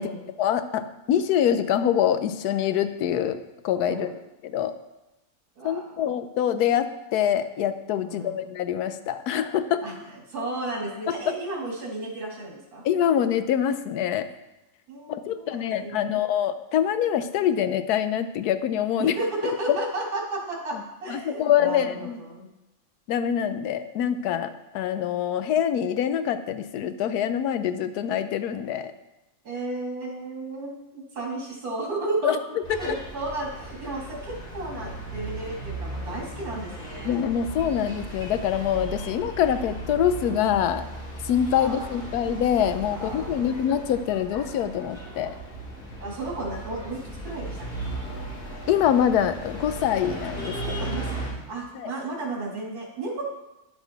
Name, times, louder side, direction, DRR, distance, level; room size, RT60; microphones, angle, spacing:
voice 1, 0.4-3.4 3.6-4.1 4.4-4.7 5.6-9.8 12.8-14.3 15.3-19.2 19.7-19.8 21.1-22.2 23.1-28.9 32.2-32.4 37.0-40.8 41.2-45.3 48.7-51.0 51.8-51.9, left 9 dB, 80° left, 11 dB, 1.1 m, -25 dB
voice 2, 3.8-4.2 5.6-6.0 8.0-8.5 9.8-12.8 14.9-16.2 19.0-22.5 29.4-32.4 32.8-37.2 37.8-38.0 41.5-42.4 42.8-43.5 46.0-48.3 50.8-53.2, right 2 dB, 75° right, -1 dB, 2.4 m, -34 dB
sound 1, 32.6-51.3, right 1 dB, 5° left, 3.8 m, -36 dB
10.5 x 7.1 x 4.0 m, 0.98 s
omnidirectional pair, 1.6 m